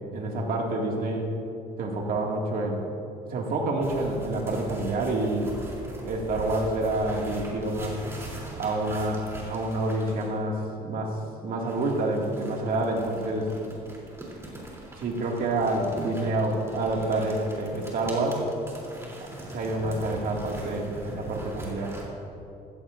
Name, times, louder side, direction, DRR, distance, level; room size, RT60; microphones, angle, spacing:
voice 1, 0.1-1.2 1.8-2.8 3.3-5.5 6.0-8.1 8.6-13.5 15.0-18.5 19.5-22.0, right 2 dB, 60° right, -1 dB, 2.2 m, -28 dB
sound 1, 3.8-10.4 11.6-22.0, right 1 dB, 15° right, 3.3 m, -41 dB
16.0 x 15.0 x 2.6 m, 2.8 s
cardioid pair, 110°, 17 cm